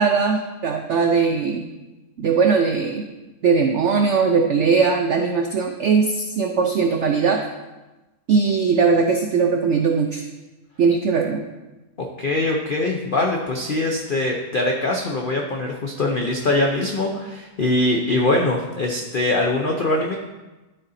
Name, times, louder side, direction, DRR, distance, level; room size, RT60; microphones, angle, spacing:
voice 1, 0.0-1.7 2.2-3.1 3.4-7.4 8.3-10.2 10.8-11.4, right 5 dB, 85° right, 3 dB, 0.6 m, -19 dB
voice 2, 12.0-20.2, left 2 dB, 90° left, 1 dB, 0.4 m, -22 dB
11.0 x 3.9 x 4.1 m, 1.1 s
omnidirectional pair, 1.9 m